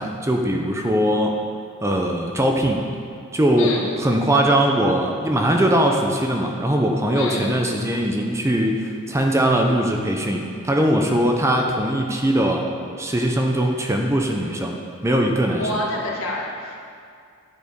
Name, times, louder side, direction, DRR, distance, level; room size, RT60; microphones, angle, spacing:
voice 1, 0.0-1.4 1.8-2.9 3.3-3.7 4.0-12.7 13.0-14.8 15.0-15.8, right 1 dB, 15° right, 1 dB, 0.6 m, -21 dB
voice 2, 3.6-3.9 7.1-7.6 15.6-16.8, left 1 dB, 65° left, -2 dB, 1.6 m, -27 dB
9.4 x 6.8 x 5.1 m, 2.4 s
head